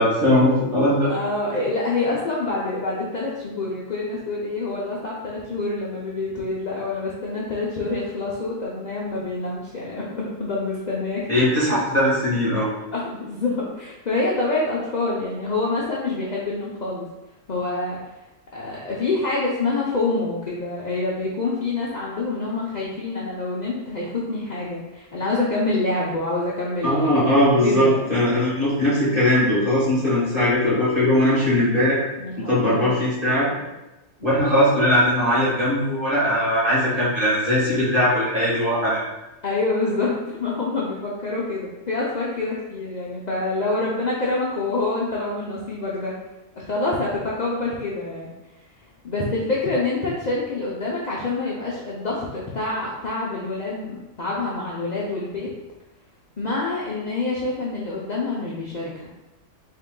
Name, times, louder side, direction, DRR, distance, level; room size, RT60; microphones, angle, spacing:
voice 1, 0.0-1.1 11.3-12.7 26.8-32.0 32.5-33.5 34.2-39.0, left 1 dB, 25° right, -9 dB, 1.7 m, -20 dB
voice 2, 1.1-11.5 12.9-17.1 17.5-18.0 18.5-27.2 27.6-28.1 32.2-32.9 39.4-46.2 46.5-48.3 49.0-55.5 56.4-59.1, left 3 dB, 75° left, -6 dB, 0.4 m, -26 dB
3.6 x 2.9 x 3.7 m, 0.99 s
omnidirectional pair, 1.6 m